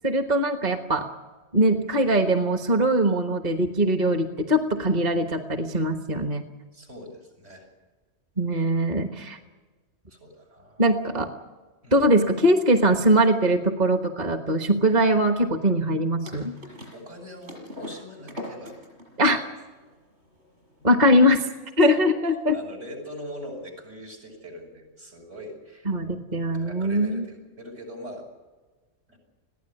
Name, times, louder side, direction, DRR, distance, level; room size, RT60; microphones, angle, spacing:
voice 1, 0.0-1.1 1.5-6.5 8.4-9.4 10.8-11.3 11.9-16.5 19.2-19.4 20.8-21.5 21.8-22.6 25.9-27.2, right 1 dB, 35° right, 5 dB, 1.4 m, -21 dB
voice 2, 6.7-7.7 8.6-8.7 10.1-10.8 11.8-12.1 16.6-18.7 19.2-19.4 22.0-22.1 22.5-25.9 26.3-28.2 29.1-29.2, equal, 75° right, 0 dB, 7.1 m, -42 dB
sound 1, 16.2-21.4, left 1 dB, 55° right, 6.8 m, -42 dB
21.5 x 15.5 x 9.9 m, 1.3 s
omnidirectional pair, 1.3 m